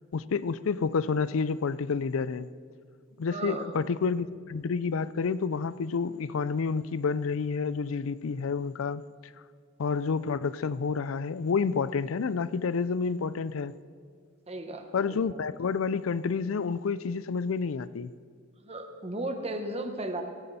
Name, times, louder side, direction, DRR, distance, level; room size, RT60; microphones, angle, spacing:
voice 1, 0.1-2.5 3.2-9.0 9.8-13.7 14.9-18.1, left 5 dB, 90° left, 17 dB, 0.4 m, -29 dB
voice 2, 3.3-3.7 14.5-15.4 18.6-20.2, right 2 dB, 30° right, 6 dB, 1.2 m, -35 dB
17.5 x 13.0 x 4.2 m, 2.2 s
head